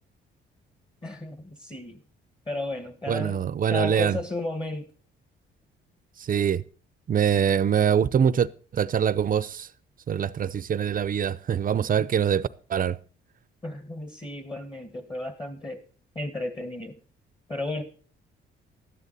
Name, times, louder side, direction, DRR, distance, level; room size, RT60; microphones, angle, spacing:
voice 1, 1.0-2.0 2.5-3.4 3.7-4.9 13.6-15.8 16.2-17.0 17.5-17.8, left 2 dB, 20° left, 1.7 m, -33 dB
voice 2, 3.1-4.2 6.2-6.6 7.1-8.5 8.7-9.7 10.1-13.0, right 8 dB, 45° right, 0.6 m, -24 dB
12.5 x 11.0 x 4.1 m
cardioid pair, 90°, 20 cm